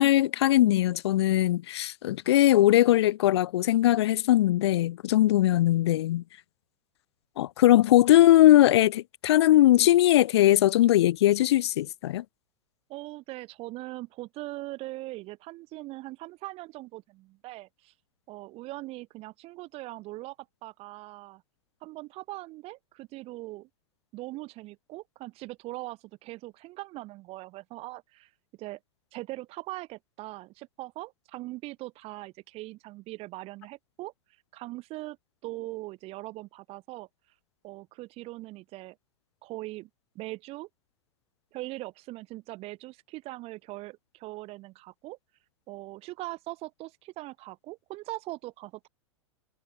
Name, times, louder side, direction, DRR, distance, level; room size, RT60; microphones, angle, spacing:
voice 1, 0.0-6.2 7.4-12.2, left 14 dB, 55° left, 0.8 m, -20 dB
voice 2, 12.9-17.9 18.3-20.4 20.6-21.4 21.8-23.7 24.1-28.3 28.6-28.8 29.1-34.1 34.5-35.2 35.4-37.1 37.6-39.0 39.4-39.9 40.2-40.7 41.5-45.2 45.7-48.9, right 19 dB, 35° right, 3.8 m, -41 dB
figure-of-eight pair, 90°, 17 cm